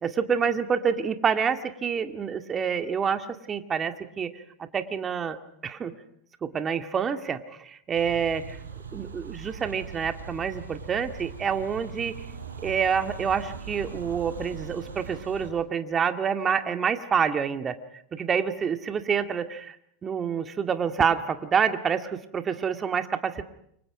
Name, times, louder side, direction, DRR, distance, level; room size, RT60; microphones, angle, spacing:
voice 1, 0.0-5.4 5.6-5.9 6.4-8.6 8.9-12.1 12.6-17.8 18.1-19.8 20.0-23.4, right 7 dB, 30° right, 8 dB, 2.1 m, -27 dB
sound 1, 7.9-15.5, right 5 dB, 90° right, 5.1 m, -40 dB
29.0 x 25.0 x 5.1 m, 0.71 s
hypercardioid pair, 95°, 0 cm